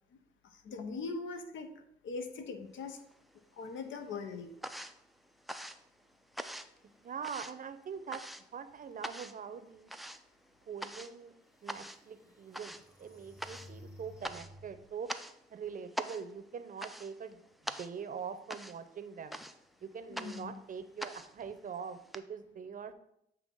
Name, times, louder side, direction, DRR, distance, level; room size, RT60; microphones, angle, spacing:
voice 1, 0.4-1.7 2.0-3.0 3.6-4.5 20.1-20.6, left 4 dB, 75° left, 7 dB, 0.9 m, -41 dB
sound 1, 2.8-3.6 3.9-22.2, equal, ahead, 0.4 m, -45 dB
voice 2, 7.0-8.2 8.5-9.9 10.7-11.3 11.6-15.1 15.5-19.4 19.8-22.9, right 6 dB, 45° right, 9 dB, 0.6 m, -43 dB
sound 2, 11.2-11.3 11.8-15.0, left 1 dB, 15° left, 1.1 m, -55 dB
7.9 x 2.9 x 5.4 m, 0.75 s
cardioid pair, 90°, 20 cm